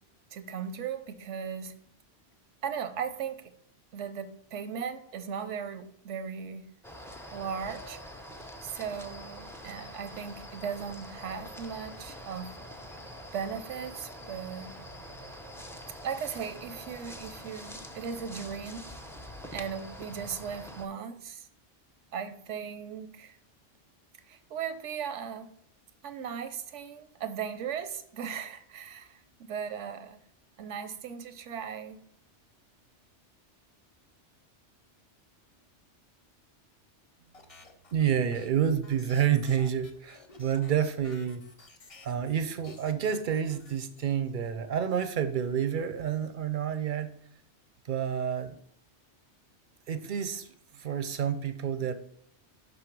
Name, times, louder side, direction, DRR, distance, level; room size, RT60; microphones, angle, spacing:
voice 1, 0.3-1.7 2.6-3.5 3.9-6.7 7.3-8.0 8.6-12.6 13.3-14.8 16.0-18.9 19.5-21.5 22.1-23.4 24.2-25.5 26.0-30.2 30.6-32.0, right 7 dB, 85° right, 11 dB, 1.0 m, -37 dB
sound 1, 6.8-20.9, equal, 5° left, 0.3 m, -45 dB
sound 2, 37.3-42.4 42.6-44.3, left 3 dB, 35° left, 0.7 m, -54 dB
voice 2, 37.9-41.4 42.0-47.1 47.9-48.6 49.9-50.5 50.7-51.9, right 8 dB, 55° right, 10 dB, 0.6 m, -29 dB
5.5 x 3.9 x 5.9 m, 0.67 s
omnidirectional pair, 1.2 m